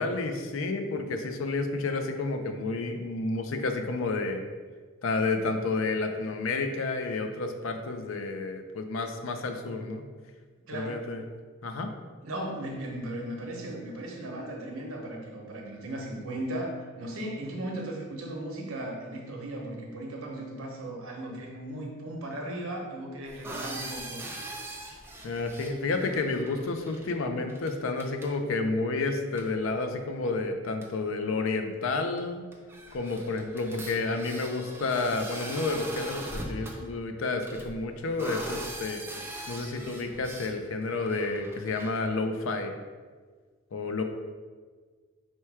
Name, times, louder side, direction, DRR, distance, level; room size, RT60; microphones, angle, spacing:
voice 1, 0.0-4.4 5.0-10.1 10.7-11.2 11.6-11.9 25.2-32.4 32.9-39.0 39.5-42.7 43.7-44.0, left 3 dB, 70° left, 6 dB, 0.4 m, -30 dB
voice 2, 10.7-11.0 12.2-24.2, right 1 dB, 80° right, 0 dB, 0.8 m, -37 dB
sound 1, 23.3-27.1 27.5-27.7 28.0-28.3 29.4-29.5 30.4-30.5 30.8-30.9 32.2-32.3 32.5-36.8 37.4-40.5 40.9-42.0, right 1 dB, 10° right, 0.4 m, -41 dB
4.4 x 2.2 x 4.6 m, 1.5 s
head